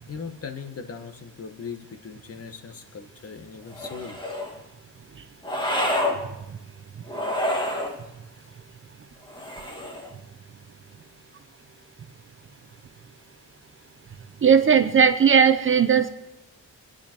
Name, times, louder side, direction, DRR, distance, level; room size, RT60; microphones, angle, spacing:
voice 1, 0.1-4.2 7.8-7.9, left 5 dB, 45° left, 6 dB, 1.4 m, -39 dB
sound 1, 3.7-4.5 5.4-6.2 7.1-7.9 9.3-10.1, left 1 dB, 15° left, 2.6 m, -28 dB
voice 2, 14.4-16.1, right 7 dB, 35° right, 9 dB, 0.8 m, -17 dB
24.5 x 10.5 x 4.5 m, 0.91 s
wide cardioid pair, 150°, 35 cm